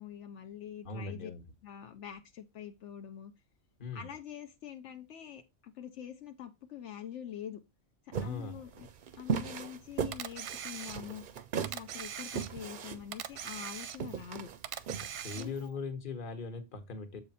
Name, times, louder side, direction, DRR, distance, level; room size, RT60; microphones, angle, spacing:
voice 1, 0.0-1.3 1.6-3.3 3.9-7.6 8.0-8.9 9.2-11.2 11.6-14.5 15.3-15.8, left 9 dB, 80° left, 1.0 m, -45 dB
voice 2, 0.8-1.4 3.8-4.1 8.1-8.6 15.2-17.2, left 4 dB, 45° left, 1.2 m, -40 dB
sound 1, 8.1-15.6, right 6 dB, 55° right, 0.6 m, -37 dB
Camera, 10.1-11.3 11.6-12.8 13.1-14.3 14.6-15.7, right 9 dB, 90° right, 1.0 m, -41 dB
7.2 x 5.0 x 4.1 m
omnidirectional pair, 1.2 m